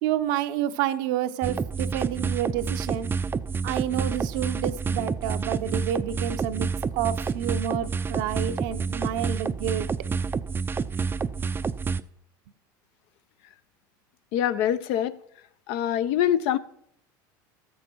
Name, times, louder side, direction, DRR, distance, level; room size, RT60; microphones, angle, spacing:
voice 1, 0.0-3.1 3.6-9.9 10.2-10.3, right 11 dB, 75° right, 0.8 m, -29 dB
sound 1, 1.4-12.0, right 5 dB, 20° right, 0.4 m, -29 dB
voice 2, 14.3-15.2 15.7-16.6, left 10 dB, 65° left, 0.6 m, -24 dB
13.0 x 8.2 x 4.6 m
supercardioid pair, 95°, 11 cm